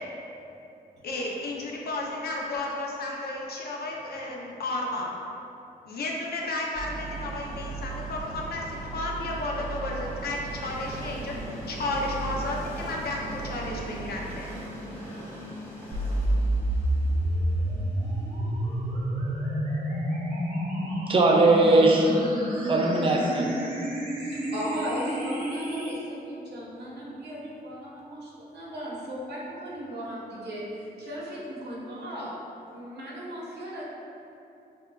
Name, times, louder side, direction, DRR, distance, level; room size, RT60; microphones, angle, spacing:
voice 1, 1.0-5.1 5.9-14.5, left 2 dB, 65° left, -2 dB, 0.6 m, -33 dB
sound 1, 6.7-14.1, right 4 dB, 35° left, 1.4 m, -37 dB
Train, 7.1-22.8, equal, 15° left, 1.0 m, -44 dB
sound 2, 15.9-25.9, right 1 dB, 55° right, 0.8 m, -29 dB
voice 2, 21.0-22.1 22.6-23.6, right 2 dB, 30° right, 0 dB, 0.5 m, -20 dB
voice 3, 24.1-32.3 32.6-33.8, equal, 80° right, -6 dB, 1.0 m, -37 dB
6.8 x 2.3 x 2.3 m, 2.8 s
wide cardioid pair, 120°, 17 cm